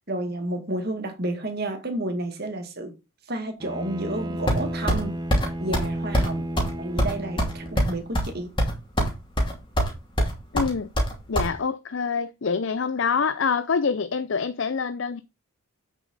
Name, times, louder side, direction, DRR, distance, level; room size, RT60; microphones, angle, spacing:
voice 1, 0.1-2.9 3.3-5.2 5.6-6.5 6.8-8.5, right 1 dB, 45° right, 2.1 m, -31 dB
Bowed string instrument, 3.6-8.1, right 1 dB, 20° right, 0.9 m, -33 dB
sound 1, 4.5-5.0 5.3-5.5 5.7-5.9 6.1-6.3 6.6-6.7 7.0-8.3 8.6-9.1 9.4-9.9 10.2-11.5, equal, 20° left, 2.6 m, -22 dB
voice 2, 10.5-10.9 11.3-15.2, left 5 dB, 60° left, 0.5 m, -26 dB
8.4 x 6.4 x 4.0 m
head